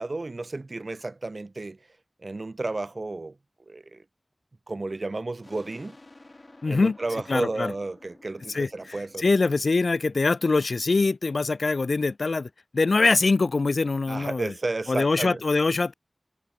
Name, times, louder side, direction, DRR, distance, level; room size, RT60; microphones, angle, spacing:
voice 1, 0.0-1.8 2.2-3.3 3.7-4.0 4.7-6.0 6.7-9.2 14.1-15.4, right 2 dB, 55° right, 0.3 m, -32 dB
sound 1, 5.4-10.7, left 2 dB, 45° left, 6.9 m, -53 dB
voice 2, 6.6-7.0 7.3-7.7 8.5-14.5 14.9-15.9, left 3 dB, 85° left, 0.3 m, -23 dB
wide cardioid pair, 60°, 0 cm